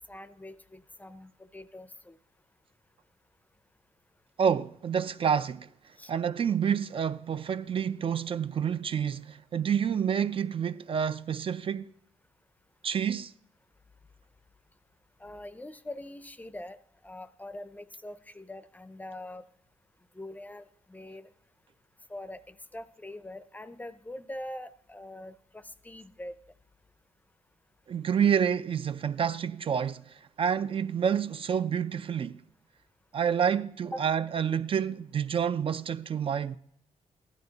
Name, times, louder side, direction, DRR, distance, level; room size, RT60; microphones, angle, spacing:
voice 1, 0.1-2.2 6.0-6.1 15.2-16.8 17.0-19.5 20.1-21.3 22.1-26.3 33.9-34.1, left 1 dB, 10° left, 0.5 m, -43 dB
voice 2, 4.4-5.7 6.1-11.9 12.8-13.3 27.9-32.4 33.1-36.6, right 7 dB, 45° right, 0.4 m, -28 dB
15.5 x 12.0 x 4.0 m
cardioid pair, 130°, 13 cm